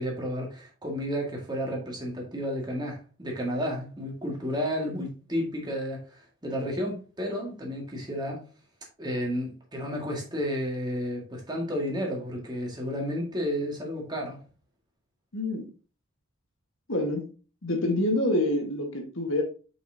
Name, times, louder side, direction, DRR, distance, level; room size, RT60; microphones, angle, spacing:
voice 1, 0.0-8.4 9.0-14.4, equal, 20° right, 1.9 m, -32 dB
voice 2, 15.3-15.7 16.9-17.2 17.6-19.4, left 1 dB, 65° left, 1.5 m, -26 dB
7.0 x 5.5 x 2.8 m
head